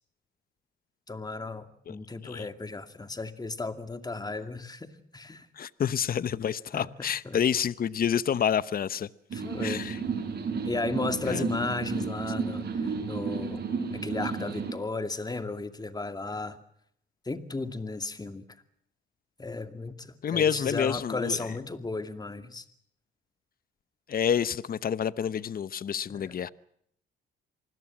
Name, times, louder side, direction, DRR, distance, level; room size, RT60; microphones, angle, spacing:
voice 1, 1.1-5.5 6.7-6.9 7.2-7.4 9.3-9.9 10.6-13.6 13.9-16.6 17.2-18.4 19.4-22.6 26.1-26.3, left 3 dB, 20° left, 2.4 m, -35 dB
voice 2, 5.6-9.1 9.6-10.0 11.3-11.4 20.2-21.4 24.1-26.5, left 8 dB, 45° left, 0.9 m, -28 dB
sound 1, 9.3-14.7, right 5 dB, 55° right, 7.9 m, -32 dB
27.0 x 20.0 x 7.4 m
cardioid pair, 90°, 20 cm